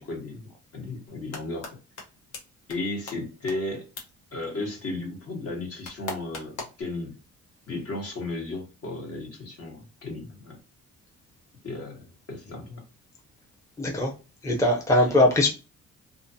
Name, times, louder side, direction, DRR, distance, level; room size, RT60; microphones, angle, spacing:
voice 1, 0.0-1.8 2.7-3.9 4.3-7.2 7.7-10.6 11.6-12.8, left 2 dB, 50° left, 1.3 m, -35 dB
sound 1, 1.1-1.7 2.0-2.1 2.3-2.4 2.7-2.8 3.1-3.2 3.5-3.6 4.0-4.1 5.8-6.8, left 3 dB, 75° left, 1.0 m, -36 dB
voice 2, 13.8-14.1 14.4-15.5, left 1 dB, 10° left, 0.6 m, -21 dB
2.5 x 2.4 x 2.6 m
cardioid pair, 90°, 30 cm